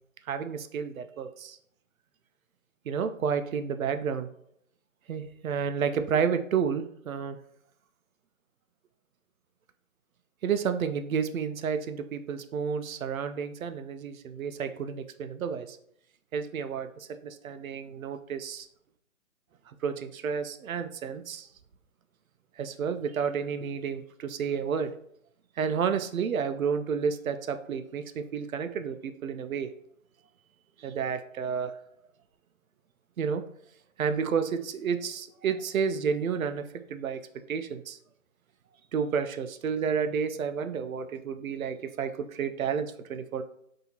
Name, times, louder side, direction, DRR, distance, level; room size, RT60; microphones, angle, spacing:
voice 1, 0.3-1.6 2.9-4.3 5.1-7.4 10.4-15.8 16.3-18.7 19.8-21.5 22.6-24.9 25.6-29.7 30.8-31.7 33.2-33.4 34.0-36.6 36.9-37.2 37.5-38.0 38.9-43.4, right 6 dB, 85° right, 9 dB, 0.5 m, -31 dB
4.0 x 2.8 x 2.8 m, 0.69 s
hypercardioid pair, 180°, 41 cm